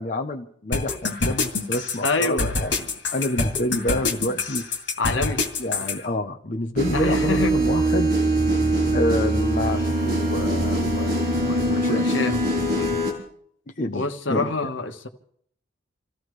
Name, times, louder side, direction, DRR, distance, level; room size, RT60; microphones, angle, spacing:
voice 1, 0.0-2.8 3.1-4.6 5.6-8.1 8.9-12.1 13.8-14.5, left 1 dB, 40° left, 0.7 m, -28 dB
sound 1, 0.7-6.0, left 3 dB, 65° left, 2.4 m, -25 dB
voice 2, 2.0-2.5 2.8-2.9 5.0-5.4 6.9-7.6 11.4-12.4 12.7-13.0 13.9-15.1, left 3 dB, 80° left, 1.4 m, -27 dB
sound 2, 6.8-13.1, right 1 dB, 55° right, 5.5 m, -22 dB
28.0 x 15.5 x 3.2 m
head